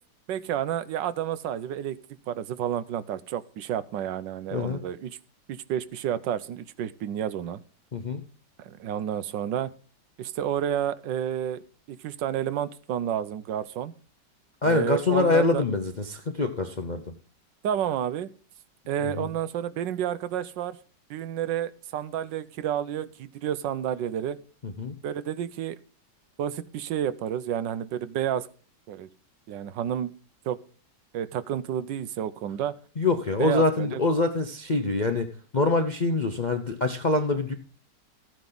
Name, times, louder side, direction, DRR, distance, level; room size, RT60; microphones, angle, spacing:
voice 1, 0.3-2.0 2.3-5.2 5.5-7.6 8.6-9.7 10.2-11.6 11.9-13.9 14.6-15.6 17.6-18.3 18.9-20.8 21.1-24.4 25.0-25.8 26.4-28.5 28.9-29.1 29.5-30.1 30.4-30.6 31.1-32.8 33.4-34.0, right 10 dB, 80° right, 15 dB, 1.4 m, -30 dB
voice 2, 4.5-4.8 7.9-8.2 14.6-17.1 19.0-19.3 24.6-24.9 33.0-37.5, left 3 dB, 55° left, 4 dB, 0.5 m, -25 dB
14.0 x 9.4 x 3.9 m, 0.39 s
omnidirectional pair, 1.9 m